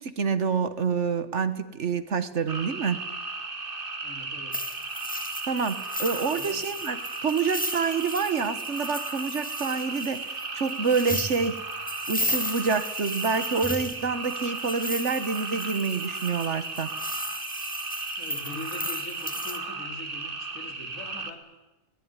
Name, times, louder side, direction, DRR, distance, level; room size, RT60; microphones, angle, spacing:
voice 1, 0.0-3.0 5.5-11.6 12.1-16.9, right 5 dB, 60° right, 12 dB, 1.5 m, -27 dB
sound 1, 2.5-21.3, right 3 dB, 40° right, 1.9 m, -35 dB
voice 2, 4.0-4.6 6.3-6.6 18.2-21.4, left 2 dB, 70° left, 4 dB, 3.9 m, -42 dB
sound 2, 4.5-19.6, left 1 dB, 5° left, 1.9 m, -36 dB
21.5 x 18.5 x 9.7 m, 1.1 s
omnidirectional pair, 1.4 m